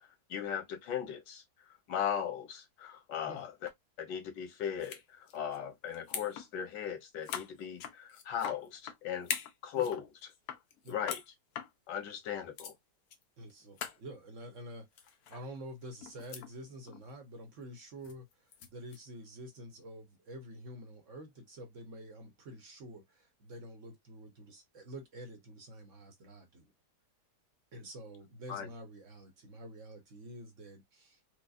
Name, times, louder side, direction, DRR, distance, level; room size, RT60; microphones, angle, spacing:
voice 1, 0.3-1.4 1.9-3.7 4.0-5.0 5.3-9.3 9.6-10.0 10.9-11.2 11.9-12.7 28.5-28.7, left 9 dB, 85° left, 1.6 m, -37 dB
sound 1, 4.8-5.0 5.3-5.6 5.9-6.5 6.7-6.8 7.2-9.0 9.2-10.0 10.3-11.3 11.6-11.7 12.3-12.4 12.6-12.7 13.1-13.2 13.5-13.6 13.8-14.0 15.0-15.4 15.8-16.5 16.9-17.1 18.0-19.0, left 8 dB, 70° left, 1.0 m, -41 dB
voice 2, 13.4-26.7 27.7-31.2, right 1 dB, 55° right, 1.1 m, -48 dB
4.7 x 2.1 x 2.5 m
omnidirectional pair, 1.9 m